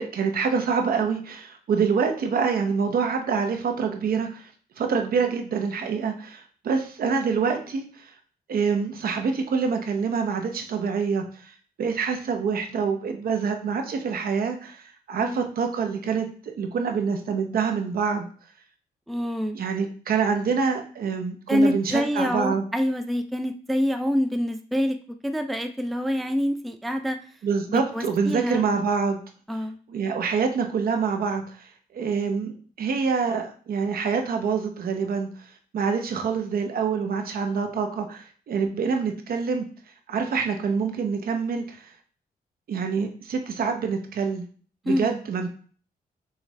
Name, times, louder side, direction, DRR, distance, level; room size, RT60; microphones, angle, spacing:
voice 1, 0.0-4.5 4.8-8.0 8.5-18.3 19.5-22.6 27.4-29.2 29.9-31.7 31.9-35.3 35.7-39.6 40.1-41.9 42.7-44.5 44.8-45.5, right 5 dB, 70° right, 5 dB, 0.8 m, -26 dB
voice 2, 19.1-19.6 21.5-27.2 27.7-28.7 29.5-29.8 44.9-45.1, equal, ahead, 7 dB, 0.3 m, -26 dB
6.3 x 2.4 x 3.2 m, 0.43 s
cardioid pair, 100°, 16 cm